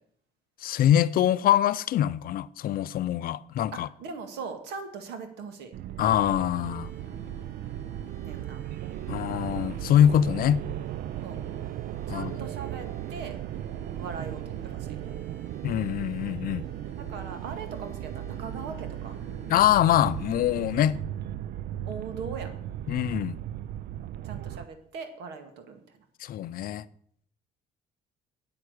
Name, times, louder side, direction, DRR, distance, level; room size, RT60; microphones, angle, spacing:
voice 1, 0.6-3.9 6.0-6.9 9.1-10.6 12.1-12.5 15.6-16.6 19.5-21.0 22.9-23.4 26.2-26.8, left 11 dB, 60° left, 0.5 m, -24 dB
voice 2, 3.7-5.7 8.2-8.6 11.2-11.4 12.1-13.4 14.0-15.0 17.0-19.2 21.9-22.5 24.2-25.8, right 5 dB, 85° right, 1.9 m, -40 dB
sound 1, 5.7-24.7, right 12 dB, 60° right, 0.4 m, -36 dB
sound 2, 6.0-20.9, right 1 dB, 45° right, 5.9 m, -50 dB
8.8 x 8.3 x 6.5 m
cardioid pair, 110°, 17 cm